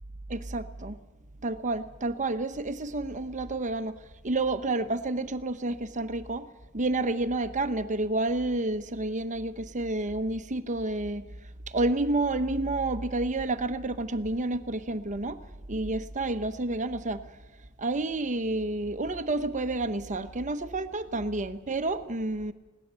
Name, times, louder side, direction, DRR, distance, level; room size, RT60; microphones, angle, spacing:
voice 1, 0.3-1.0 1.4-4.0 4.2-6.5 6.7-15.4 15.7-17.2 17.8-22.5, right 2 dB, 35° right, 1.0 m, -30 dB
20.5 x 17.5 x 8.2 m
head